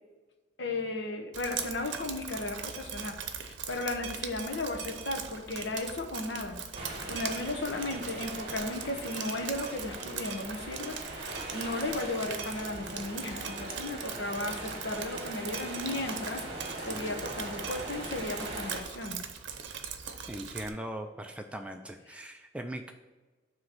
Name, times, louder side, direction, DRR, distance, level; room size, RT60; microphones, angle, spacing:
voice 1, 0.6-6.6 7.1-16.4 16.8-19.2, left 2 dB, 60° left, 3 dB, 1.0 m, -35 dB
Drip, 1.3-20.7, right 7 dB, 70° right, 0.7 m, -40 dB
sound 1, 6.7-18.8, right 1 dB, 30° right, 1.3 m, -41 dB
voice 2, 20.3-22.9, right 1 dB, 5° right, 5 dB, 0.3 m, -40 dB
7.5 x 3.1 x 6.2 m, 1.3 s
head